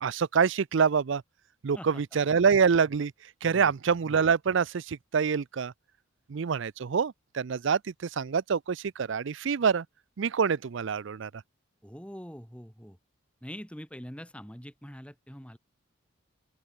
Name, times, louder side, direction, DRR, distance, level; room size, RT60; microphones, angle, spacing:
voice 1, 0.0-1.2 1.6-3.1 3.4-5.7 6.3-9.9 10.2-11.3, right 6 dB, 65° right, 0.5 m, -26 dB
voice 2, 11.8-13.0 13.4-15.6, equal, 5° left, 4.3 m, -44 dB
open air
head